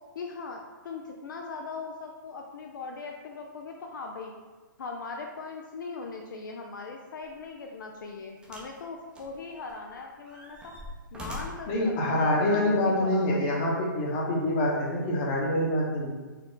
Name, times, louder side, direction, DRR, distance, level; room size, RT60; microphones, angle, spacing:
voice 1, 0.2-4.3 4.8-10.7 11.1-12.7 13.0-13.5, left 4 dB, 70° left, 2 dB, 0.5 m, -40 dB
sound 1, 7.2-7.4 8.4-8.8 9.1-9.9 10.3-11.7 12.6-12.7, left 1 dB, 10° right, 0.6 m, -42 dB
voice 2, 11.7-16.1, left 1 dB, 30° left, -2 dB, 1.0 m, -26 dB
4.4 x 2.4 x 3.8 m, 1.3 s
hypercardioid pair, 150°, 11 cm